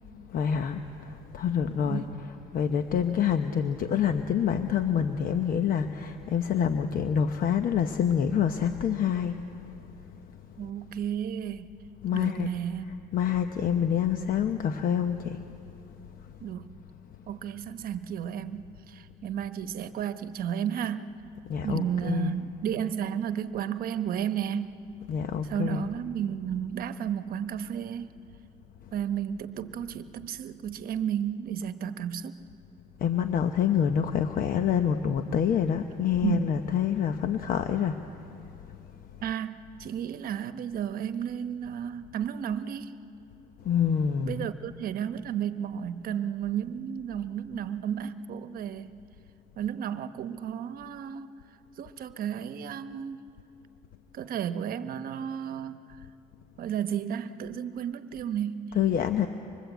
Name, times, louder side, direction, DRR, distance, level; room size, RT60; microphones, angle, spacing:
voice 1, 0.3-9.8 12.0-12.5 12.9-15.4 15.9-16.0 21.5-22.4 25.1-25.9 33.0-38.0 38.5-38.8 43.6-44.5 58.7-59.3, left 8 dB, 55° left, 8 dB, 0.9 m, -27 dB
voice 2, 1.8-2.2 10.6-11.7 12.1-12.9 16.4-16.8 17.3-21.2 21.6-24.8 25.4-28.2 28.9-32.4 36.2-36.7 39.2-42.9 44.2-49.0 49.6-51.3 51.8-53.2 54.1-55.8 56.6-58.8, right 9 dB, 60° right, 11 dB, 1.0 m, -33 dB
25.0 x 23.0 x 8.1 m, 2.7 s
cardioid pair, 110°, 17 cm